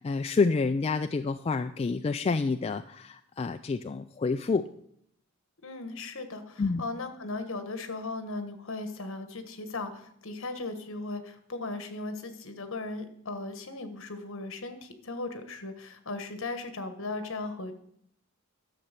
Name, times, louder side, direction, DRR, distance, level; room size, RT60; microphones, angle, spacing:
voice 1, 0.0-4.6 6.6-6.8, left 4 dB, 30° left, 8 dB, 0.3 m, -28 dB
voice 2, 5.6-17.7, left 3 dB, 65° left, 8 dB, 1.4 m, -37 dB
12.0 x 6.9 x 6.6 m, 0.71 s
head